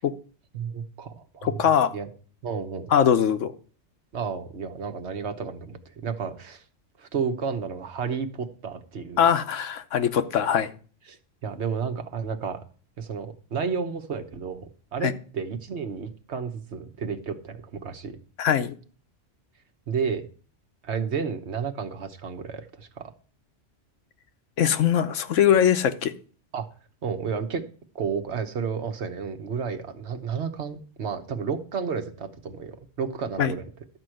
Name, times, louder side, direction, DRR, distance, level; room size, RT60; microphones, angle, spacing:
voice 1, 0.5-1.6 1.9-2.1 2.4-2.9 4.1-6.6 7.0-9.3 11.1-12.6 13.0-18.2 19.9-20.3 20.8-23.1 26.5-26.7 27.0-27.6 27.9-33.6, right 6 dB, 65° right, 1.3 m, -31 dB
voice 2, 1.4-1.9 2.9-3.5 9.2-10.7 15.0-15.1 18.4-18.7 24.6-26.1 33.4-33.5, left 9 dB, 80° left, 1.1 m, -21 dB
12.0 x 4.6 x 7.7 m
omnidirectional pair, 1.3 m